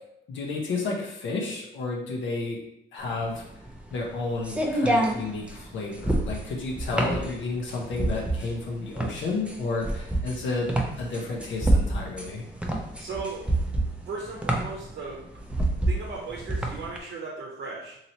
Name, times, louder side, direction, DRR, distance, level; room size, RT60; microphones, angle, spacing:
voice 1, 0.3-2.6 2.9-3.4 3.9-10.7 11.0-12.4, left 3 dB, 70° left, -1 dB, 0.7 m, -31 dB
sound 1, 3.1-17.0, right 1 dB, 5° right, 0.5 m, -27 dB
voice 2, 13.0-13.5 14.1-15.2 15.9-18.0, right 4 dB, 60° right, -2 dB, 0.7 m, -36 dB
2.9 x 2.9 x 2.8 m, 0.78 s
cardioid pair, 90°, 20 cm